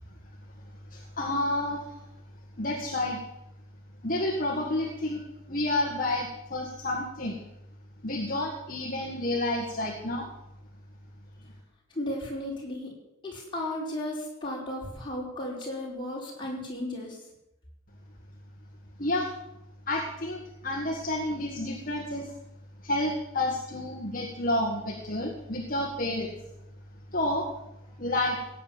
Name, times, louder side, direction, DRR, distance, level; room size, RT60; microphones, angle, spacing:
voice 1, 0.9-1.8 2.6-3.2 4.0-7.4 8.0-10.3 19.0-19.3 19.9-22.3 22.8-26.3 27.1-27.5 28.0-28.4, left 1 dB, 40° left, 0 dB, 1.8 m, -30 dB
voice 2, 11.9-12.9 13.2-17.2, left 1 dB, 20° left, -3 dB, 4.6 m, -34 dB
17.0 x 9.2 x 7.2 m, 0.89 s
head